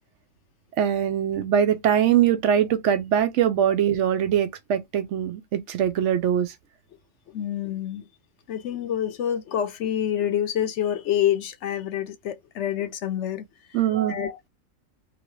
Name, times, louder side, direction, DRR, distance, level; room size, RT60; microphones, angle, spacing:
voice 1, 0.8-6.5 13.7-14.3, right 9 dB, 70° right, 0.8 m, -22 dB
voice 2, 7.3-8.1 8.5-13.8 14.1-14.5, left 10 dB, 65° left, 0.8 m, -27 dB
2.9 x 2.7 x 3.0 m
omnidirectional pair, 1.4 m